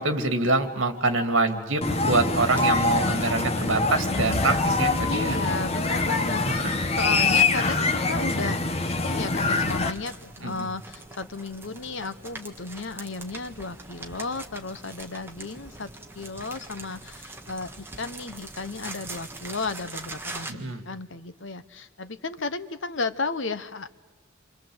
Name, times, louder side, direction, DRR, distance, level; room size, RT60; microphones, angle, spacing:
voice 1, 0.0-5.4 6.5-6.6 10.4-10.7 20.5-20.8, right 2 dB, 65° right, 8 dB, 2.6 m, -25 dB
sound 1, 1.8-9.9, left 3 dB, 30° left, 1.3 m, -24 dB
sound 2, 2.0-20.5, right 2 dB, 10° right, 1.6 m, -44 dB
voice 2, 5.1-6.7 7.0-8.7 9.0-15.9 16.1-23.9, left 3 dB, 60° left, 12 dB, 1.1 m, -34 dB
29.0 x 25.0 x 8.0 m, 1.2 s
head